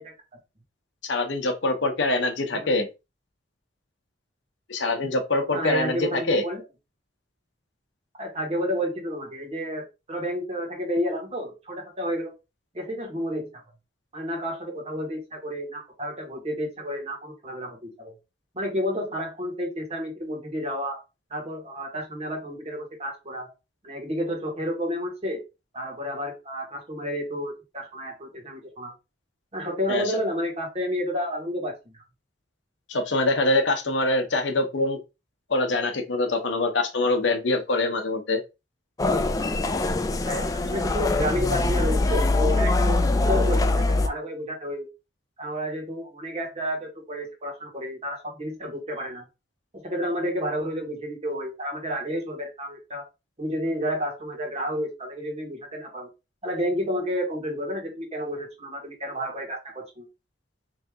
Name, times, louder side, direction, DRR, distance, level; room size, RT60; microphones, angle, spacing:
voice 1, 1.0-2.9 4.7-6.4 29.9-30.0 32.9-35.0 35.5-38.4, left 2 dB, 75° left, 0.8 m, -24 dB
voice 2, 5.5-6.6 8.2-12.3 12.7-13.5 14.1-18.1 18.5-21.0 21.3-23.5 23.8-25.4 25.7-28.9 29.5-31.7 40.2-44.9 45.4-49.2 49.8-53.0 53.4-56.1 56.4-60.1, equal, 35° right, 1.5 m, -30 dB
sound 1, 39.0-44.1, left 2 dB, 20° left, 0.3 m, -23 dB
3.2 x 2.8 x 3.5 m
head